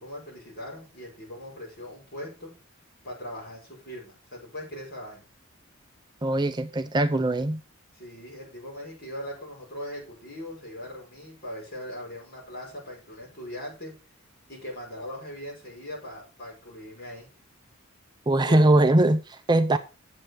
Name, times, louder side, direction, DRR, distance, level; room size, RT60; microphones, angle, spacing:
voice 1, 0.0-2.5 3.0-5.3 7.9-13.9 14.5-17.3 18.4-18.6, equal, 45° left, 5.3 m, -40 dB
voice 2, 6.2-7.6 18.3-19.8, right 1 dB, 20° right, 0.4 m, -21 dB
8.4 x 7.7 x 4.6 m
head